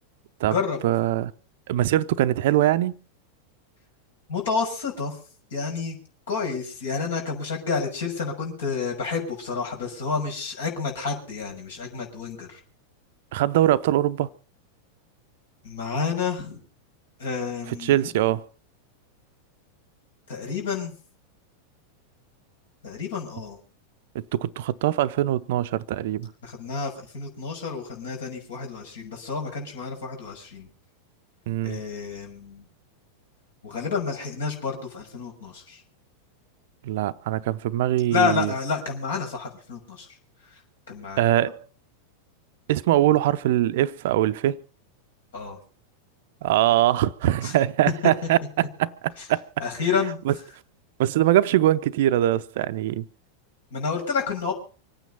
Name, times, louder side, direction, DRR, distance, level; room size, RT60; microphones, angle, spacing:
voice 1, 0.8-1.3 1.7-2.9 13.3-14.3 17.8-18.4 24.1-26.3 31.5-31.8 36.8-38.5 41.2-41.6 42.7-44.6 46.4-49.5 50.3-50.4 51.0-53.0, right 13 dB, 55° right, 0.7 m, -22 dB
voice 2, 4.3-5.2 5.5-6.0 6.3-12.6 15.6-16.6 17.2-18.0 20.3-20.9 22.8-23.6 26.4-30.7 31.6-32.6 33.6-35.8 38.1-40.1 40.5-40.6 40.9-41.2 45.3-45.6 47.4-47.5 49.2-49.3 49.6-50.2 53.7-54.5, left 5 dB, 60° left, 6.3 m, -29 dB
25.0 x 9.2 x 5.6 m
figure-of-eight pair, 90°, 0 cm